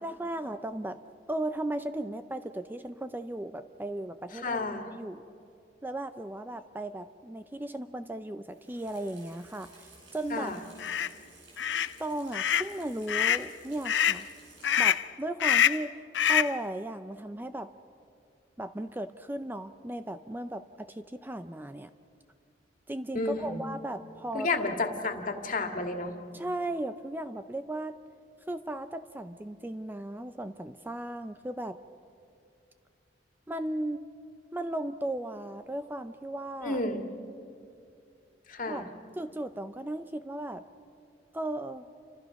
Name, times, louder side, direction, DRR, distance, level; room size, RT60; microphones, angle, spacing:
voice 1, 0.0-1.0 1.3-5.3 5.8-10.5 12.0-14.3 14.8-15.9 16.3-17.7 18.6-21.9 22.9-24.6 26.3-28.0 28.5-31.8 33.5-34.1 34.5-36.8 38.7-38.8 39.2-40.6 41.3-41.9, right 1 dB, 10° right, 10 dB, 0.5 m, -36 dB
voice 2, 4.3-4.8 10.3-10.6 23.1-23.6 24.3-26.1 36.6-37.0 38.5-38.9, left 3 dB, 50° left, 5 dB, 2.2 m, -31 dB
Water tap faucet / Sink (filling or washing), 8.5-15.2 15.5-15.6, right 2 dB, 85° right, 7.7 m, -55 dB
sound 1, 10.8-11.1 11.6-11.9 12.3-12.7 13.1-13.5 13.8-14.2 14.6-15.1 15.4-15.9 16.1-16.6, left 9 dB, 80° left, 0.5 m, -25 dB
29.5 x 25.5 x 5.9 m, 2.5 s
head